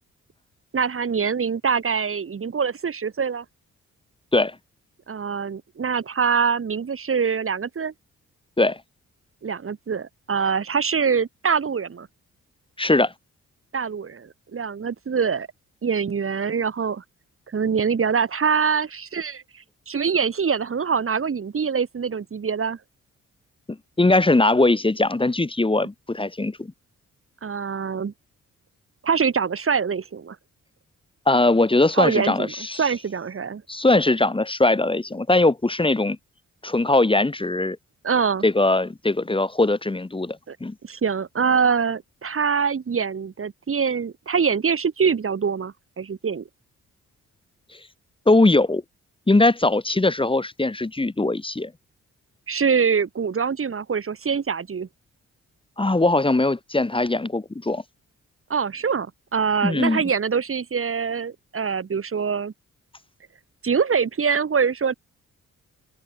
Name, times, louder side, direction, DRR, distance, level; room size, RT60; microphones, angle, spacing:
voice 1, 0.7-3.4 5.1-7.9 9.4-12.1 13.7-15.5 15.8-17.0 17.5-22.8 27.4-28.1 29.0-30.4 31.9-33.6 38.0-38.4 40.5-40.6 40.8-46.5 52.5-54.9 58.5-62.5 63.6-64.9, right 6 dB, 45° right, 2.5 m, -24 dB
voice 2, 12.8-13.1 23.7-26.7 31.3-32.8 33.7-36.2 36.6-37.8 38.4-40.7 48.3-48.8 49.3-51.7 55.8-57.8 59.6-60.0, left 2 dB, 15° left, 2.2 m, -20 dB
open air
cardioid pair, 90°, 30 cm